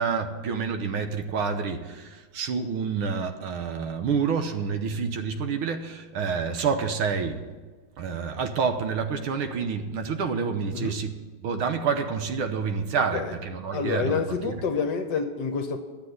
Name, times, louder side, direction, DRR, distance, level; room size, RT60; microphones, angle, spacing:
voice 1, 0.0-7.5 8.0-11.2 11.4-14.6, right 5 dB, 75° right, 1.8 m, -28 dB
voice 2, 13.7-15.8, left 5 dB, 60° left, 1.3 m, -28 dB
12.0 x 7.5 x 7.9 m
omnidirectional pair, 2.3 m